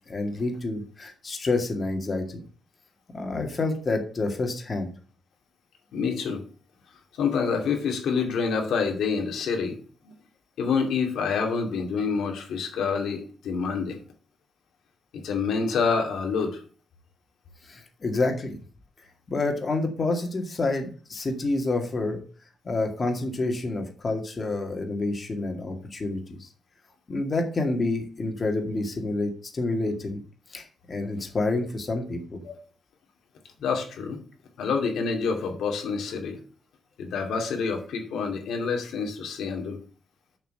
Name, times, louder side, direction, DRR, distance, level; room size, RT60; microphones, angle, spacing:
voice 1, 0.1-2.4 3.1-4.9 17.7-18.6 19.3-22.2 22.6-26.5 27.1-30.2 30.5-32.4, left 2 dB, 35° left, 4 dB, 2.1 m, -28 dB
voice 2, 5.9-6.4 7.2-9.8 10.0-10.1 10.6-14.0 15.1-16.6 32.4-32.6 33.6-34.2 34.6-36.4 37.0-39.8, left 5 dB, 85° left, 3 dB, 2.4 m, -27 dB
7.3 x 5.6 x 6.8 m, 0.42 s
cardioid pair, 130°, 0 cm